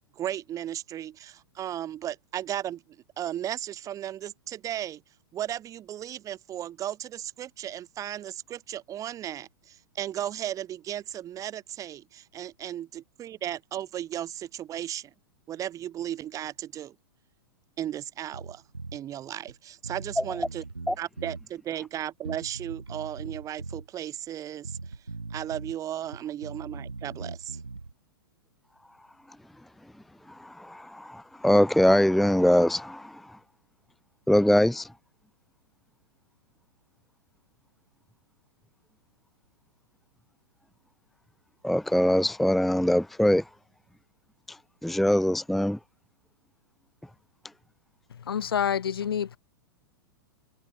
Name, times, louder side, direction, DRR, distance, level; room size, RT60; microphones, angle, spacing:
voice 1, 0.2-2.8 3.2-5.0 5.3-15.1 15.5-16.9 17.8-18.6 18.9-20.6 21.0-24.8 25.3-27.6, right 11 dB, 25° right, 2.1 m, -35 dB
Bass guitar, 18.3-19.0 19.5-19.6 19.8-21.5 22.2-23.9 24.6-25.8 26.0-27.9, right 3 dB, 85° right, 6.1 m, -40 dB
voice 2, 30.3-33.4 34.3-34.9 41.6-43.4 44.5-44.6 44.8-45.8, equal, ahead, 0.6 m, -23 dB
voice 3, 48.1-49.4, left 8 dB, 70° left, 0.9 m, -28 dB
figure-of-eight pair, 105°, 13 cm